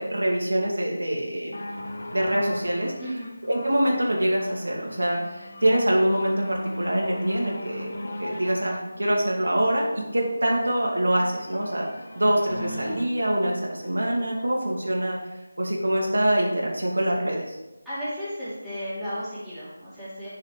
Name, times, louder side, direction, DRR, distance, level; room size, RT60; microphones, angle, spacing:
voice 1, 0.0-1.6 2.1-2.9 3.5-7.9 8.2-9.9 10.1-11.8 12.1-15.2 15.6-17.5, right 1 dB, 90° right, -2 dB, 2.1 m, -24 dB
sound 1, 1.5-15.1 15.9-16.0, left 1 dB, 55° left, 0.9 m, -38 dB
voice 2, 3.0-3.3 17.8-20.3, equal, ahead, -16 dB, 2.6 m, -34 dB
7.0 x 4.9 x 4.9 m, 1.0 s
figure-of-eight pair, 170°, 0 cm